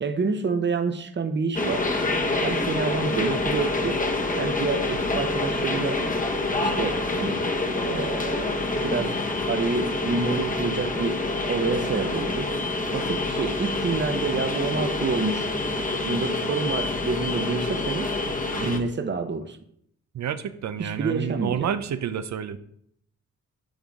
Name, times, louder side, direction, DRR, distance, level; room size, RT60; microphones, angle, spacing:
voice 1, 0.0-1.9 2.4-4.0 4.4-6.0 6.6-7.4 7.8-9.2 9.5-12.5 12.9-15.5 16.0-18.1 18.5-19.6 20.8-21.7, right 4 dB, 35° right, 8 dB, 0.9 m, -28 dB
sound 1, 1.5-18.8, left 2 dB, 25° left, 1.1 m, -27 dB
voice 2, 20.1-22.6, right 8 dB, 60° right, 12 dB, 0.5 m, -29 dB
10.5 x 3.7 x 3.6 m, 0.69 s
cardioid pair, 65°, 32 cm